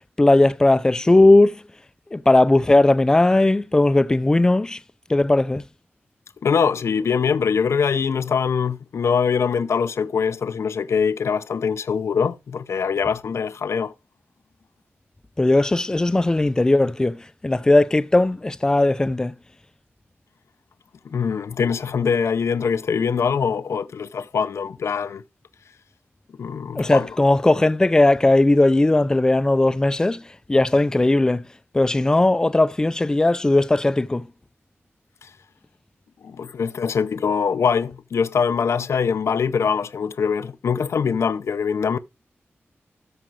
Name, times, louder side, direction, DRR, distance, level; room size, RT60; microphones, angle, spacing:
voice 1, 0.2-1.6 2.1-4.8 5.1-5.6 15.4-19.3 26.7-30.2 30.5-31.5 31.7-34.3, left 2 dB, 15° left, 0.5 m, -18 dB
voice 2, 6.4-13.9 21.1-25.2 26.4-27.1 35.2-35.3 36.2-42.0, left 6 dB, 85° left, 0.6 m, -23 dB
13.5 x 5.1 x 4.7 m
wide cardioid pair, 175°, 5 cm